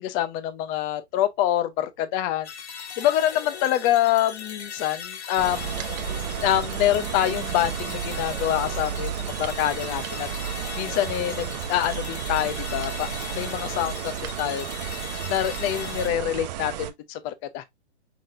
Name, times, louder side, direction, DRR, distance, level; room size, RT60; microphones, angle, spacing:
voice 1, 0.0-2.5 3.0-5.9 6.4-9.1 9.4-10.3 10.8-13.1 13.3-14.7 15.3-17.6, left 12 dB, 20° left, 0.6 m, -25 dB
sound 1, 2.4-16.1, left 7 dB, 70° left, 1.4 m, -38 dB
sound 2, 5.4-16.9, right 10 dB, 40° right, 0.6 m, -32 dB
5.9 x 3.6 x 2.5 m
hypercardioid pair, 140°, 35 cm